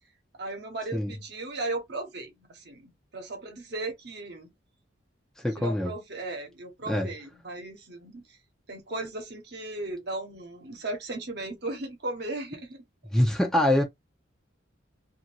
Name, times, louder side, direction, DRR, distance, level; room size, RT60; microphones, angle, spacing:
voice 1, 0.4-4.5 5.6-8.4 8.7-12.8, right 2 dB, 60° right, 1.1 m, -36 dB
voice 2, 5.4-5.9 6.9-7.1 13.1-13.8, left 1 dB, 5° left, 0.6 m, -24 dB
2.8 x 2.6 x 2.8 m
head